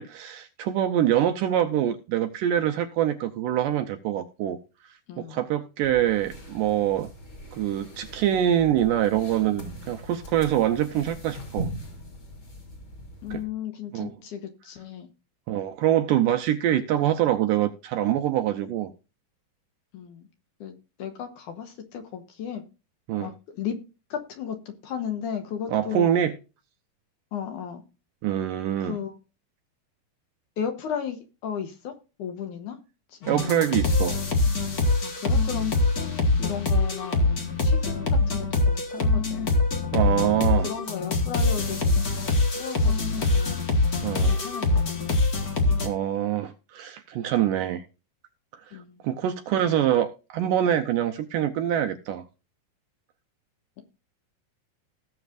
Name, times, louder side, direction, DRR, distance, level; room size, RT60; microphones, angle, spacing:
voice 1, 0.0-4.6 5.2-7.1 7.5-11.7 13.3-13.4 13.9-14.1 15.5-18.9 23.1-23.3 25.7-26.3 28.2-29.0 33.3-34.2 39.9-40.7 44.0-44.4 45.8-47.8 48.7-52.2, right 11 dB, 80° right, 7 dB, 2.0 m, -25 dB
voice 2, 5.1-5.4 13.2-15.1 19.9-20.3 20.6-22.6 23.2-23.8 24.1-26.1 27.3-27.8 28.8-29.2 30.6-32.8 33.1-33.4 35.0-39.6 40.6-43.7 44.2-45.2 45.7-45.9 48.7-49.0 53.8-53.9, left 8 dB, 70° left, 6 dB, 2.2 m, -35 dB
sound 1, 5.8-13.4, right 1 dB, 30° left, 3.5 m, -40 dB
sound 2, 33.2-45.9, left 3 dB, 90° left, 0.8 m, -24 dB
18.5 x 7.1 x 2.5 m, 0.32 s
omnidirectional pair, 4.3 m